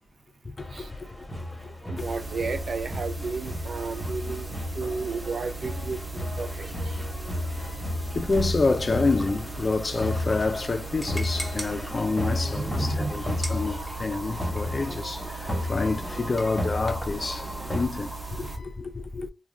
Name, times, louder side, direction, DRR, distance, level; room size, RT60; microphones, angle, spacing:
sound 1, 0.6-17.9, left 1 dB, 15° left, 1.0 m, -33 dB
voice 1, 1.9-7.0 12.6-13.2, right 4 dB, 70° right, 0.4 m, -33 dB
sound 2, 2.0-18.6, right 3 dB, 30° right, 0.9 m, -38 dB
voice 2, 7.5-7.9 8.1-17.4 17.7-19.3, left 3 dB, 45° left, 0.3 m, -28 dB
sound 3, 8.2-17.2, equal, ahead, 0.9 m, -42 dB
2.3 x 2.2 x 3.2 m
wide cardioid pair, 90°, 0 cm